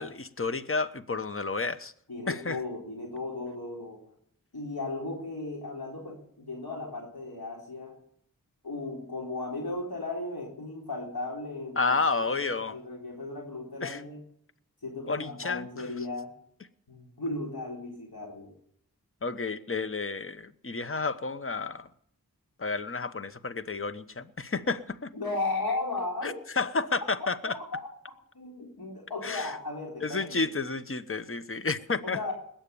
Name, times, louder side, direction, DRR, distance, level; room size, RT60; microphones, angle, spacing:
voice 1, 0.0-1.9 2.3-2.6 11.8-12.7 13.8-14.0 15.1-15.9 19.2-21.9 22.6-25.1 26.2-27.5 29.2-29.5 30.0-32.2, left 4 dB, 35° left, 12 dB, 1.0 m, -31 dB
voice 2, 2.1-4.0 4.5-8.0 8.6-14.2 14.8-16.3 16.9-18.5 25.1-26.3 27.2-27.9 28.3-30.5 32.0-32.3, left 2 dB, 80° left, -1 dB, 3.8 m, -36 dB
20.0 x 9.0 x 6.9 m, 0.68 s
wide cardioid pair, 40°, 36 cm